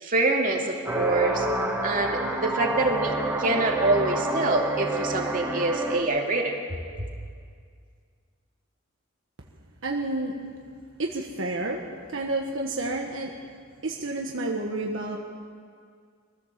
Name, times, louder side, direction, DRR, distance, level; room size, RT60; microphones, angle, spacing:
voice 1, 0.0-1.5 1.8-6.6, right 2 dB, 40° right, 0 dB, 2.5 m, -25 dB
sound 1, 0.9-6.0, right 2 dB, 15° right, 2.1 m, -28 dB
voice 2, 9.8-10.4 11.0-11.8 12.1-13.3 13.8-15.2, right 2 dB, 65° right, 1 dB, 1.5 m, -30 dB
23.0 x 15.0 x 7.5 m, 2.1 s
head